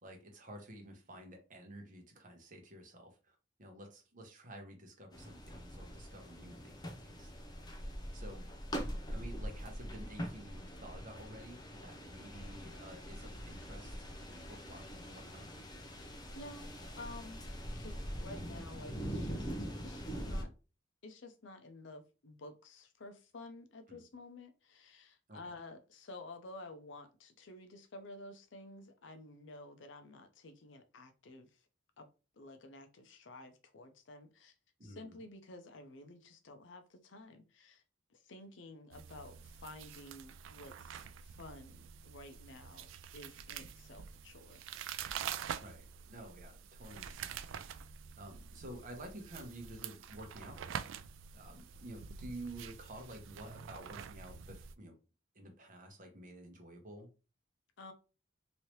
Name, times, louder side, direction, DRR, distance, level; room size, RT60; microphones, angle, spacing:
voice 1, 0.0-7.6 8.1-8.5 9.1-15.5 23.9-24.0 25.3-25.6 34.8-35.2 45.6-47.8 48.2-51.1 51.3-54.9 55.3-57.1, right 1 dB, 45° right, 0.9 m, -51 dB
sound 1, 5.1-20.4, equal, 20° left, 0.6 m, -43 dB
voice 2, 15.9-16.7 17.0-17.4 17.8-19.6 19.8-20.5 21.0-31.6 32.0-32.1 32.3-34.5 34.8-37.8 38.1-44.7 57.8-57.9, left 2 dB, 70° left, 0.6 m, -52 dB
sound 2, 38.9-54.7, right 8 dB, 80° right, 0.3 m, -46 dB
3.1 x 2.7 x 3.0 m
head